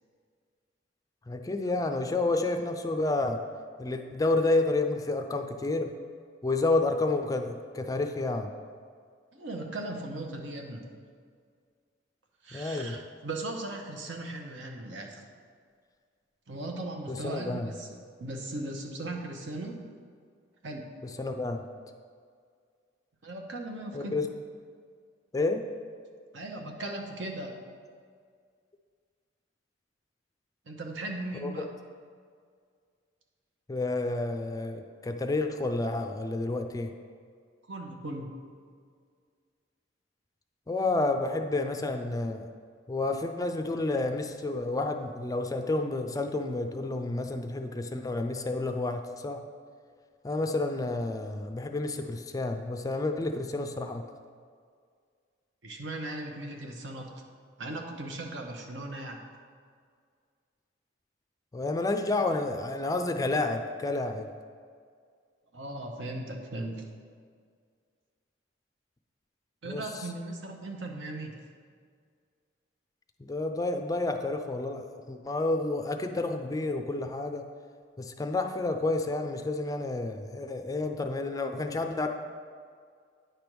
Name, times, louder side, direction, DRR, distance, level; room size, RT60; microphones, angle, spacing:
voice 1, 1.3-3.4 3.8-5.9 6.4-8.5 12.5-13.0 17.1-17.7 21.2-21.6 23.9-24.3 25.3-25.6 31.4-31.7 33.7-36.9 40.7-42.5 42.9-49.4 50.2-54.0 61.5-64.3 69.6-69.8 73.2-74.8 75.1-77.5 78.0-82.1, left 2 dB, 20° left, 6 dB, 0.4 m, -30 dB
voice 2, 9.3-10.9 12.4-15.3 16.5-17.9 18.2-19.8 20.6-20.9 23.2-24.2 26.3-27.6 30.7-31.7 37.6-38.3 55.6-57.1 57.6-59.3 65.5-66.8 69.6-71.4, right 2 dB, 70° right, 2 dB, 0.9 m, -38 dB
9.0 x 3.4 x 6.0 m, 2.1 s
head